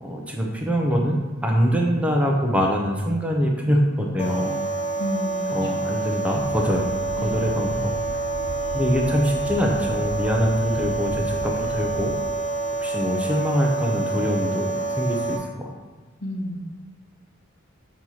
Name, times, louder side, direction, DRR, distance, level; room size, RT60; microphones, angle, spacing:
voice 1, 0.0-4.6 5.5-6.9 7.2-7.9 8.7-12.1 12.8-15.4, equal, 5° right, 0 dB, 0.7 m, -23 dB
sound 1, 4.2-15.4, right 3 dB, 30° left, 1.0 m, -28 dB
voice 2, 5.0-5.9 7.2-7.5 16.2-16.6, left 1 dB, 55° left, -2 dB, 1.0 m, -31 dB
sound 2, 6.4-12.2, right 3 dB, 65° right, 0.5 m, -37 dB
6.4 x 3.1 x 5.6 m, 1.3 s
head